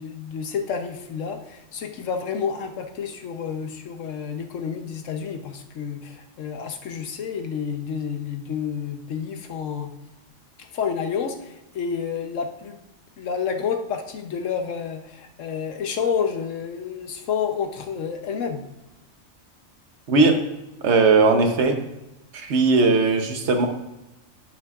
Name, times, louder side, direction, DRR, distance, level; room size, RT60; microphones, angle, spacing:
voice 1, 0.0-9.9 10.6-12.8 13.2-18.6, left 6 dB, 70° left, 5 dB, 1.2 m, -29 dB
voice 2, 20.1-20.4 20.8-21.8 22.3-23.7, right 3 dB, 60° right, 5 dB, 1.2 m, -18 dB
11.5 x 6.1 x 2.4 m, 0.96 s
omnidirectional pair, 1.4 m